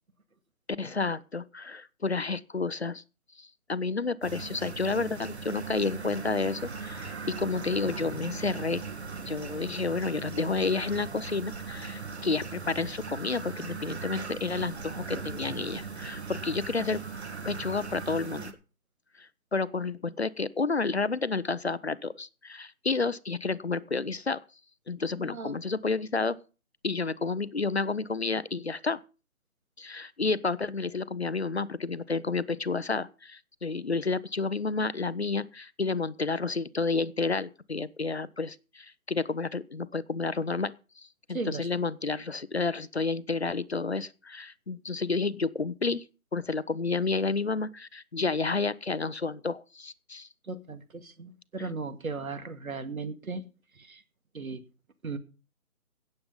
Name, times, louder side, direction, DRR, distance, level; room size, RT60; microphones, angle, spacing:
voice 1, 0.8-3.0 3.4-8.8 9.3-17.0 17.4-18.5 19.2-24.4 24.9-26.4 26.8-29.0 29.8-46.0 46.3-50.3 51.6-51.7, left 4 dB, 50° left, 0.7 m, -30 dB
sound 1, 4.2-18.5, right 4 dB, 50° right, 1.7 m, -39 dB
voice 2, 25.2-25.5 41.3-41.7 50.5-53.4 53.8-54.0 54.3-54.6 55.0-55.2, right 3 dB, 70° right, 2.3 m, -36 dB
17.0 x 7.7 x 5.4 m
hypercardioid pair, 175°, 43 cm